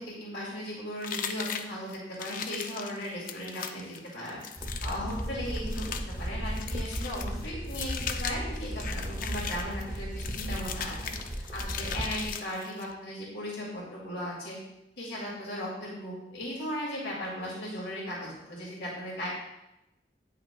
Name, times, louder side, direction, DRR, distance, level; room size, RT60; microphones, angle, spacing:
voice 1, 0.0-4.4 4.8-11.1 11.5-14.6 15.0-19.3, equal, 80° left, -4 dB, 2.2 m, -37 dB
sound 1, 1.0-12.9, left 7 dB, 50° left, 0.4 m, -39 dB
sound 2, 4.6-12.3, right 1 dB, 20° right, 0.8 m, -36 dB
9.2 x 5.7 x 2.3 m, 0.91 s
head